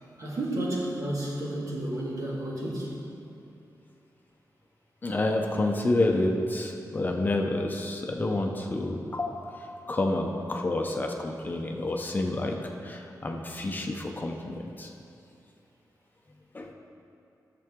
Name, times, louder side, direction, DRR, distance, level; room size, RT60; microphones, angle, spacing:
voice 1, 0.2-2.9, right 1 dB, 55° right, -4 dB, 1.9 m, -31 dB
voice 2, 5.0-12.5 12.8-14.9 16.5-16.7, left 2 dB, 30° left, 2 dB, 0.7 m, -29 dB
13.5 x 6.8 x 3.7 m, 2.7 s
wide cardioid pair, 155°, 7 cm